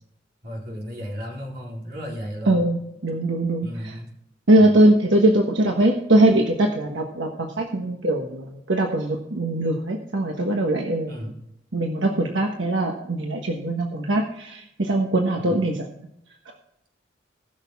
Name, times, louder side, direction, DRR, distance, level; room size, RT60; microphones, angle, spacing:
voice 1, 0.4-2.7 3.6-4.1 4.6-4.8 11.1-11.4 15.4-15.6, equal, 55° right, -1 dB, 3.7 m, -34 dB
voice 2, 2.5-3.9 4.5-11.1 11.7-15.9 16.4-16.5, right 1 dB, 85° right, 1 dB, 1.3 m, -21 dB
19.5 x 6.6 x 3.6 m, 0.80 s
head